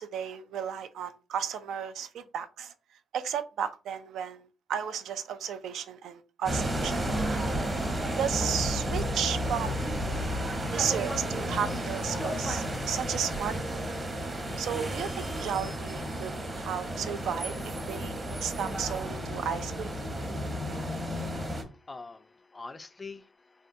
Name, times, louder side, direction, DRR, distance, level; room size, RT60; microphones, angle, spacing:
voice 1, 0.0-2.7 3.1-7.0 7.3-7.4 8.2-9.9 10.7-13.8 14.6-18.1 18.4-19.9, right 8 dB, 75° right, 0.4 m, -34 dB
sound 1, 6.4-21.6, equal, 25° right, 0.9 m, -32 dB
voice 2, 21.7-23.7, left 3 dB, 25° left, 0.3 m, -45 dB
3.5 x 2.2 x 2.6 m
cardioid pair, 90°, 0 cm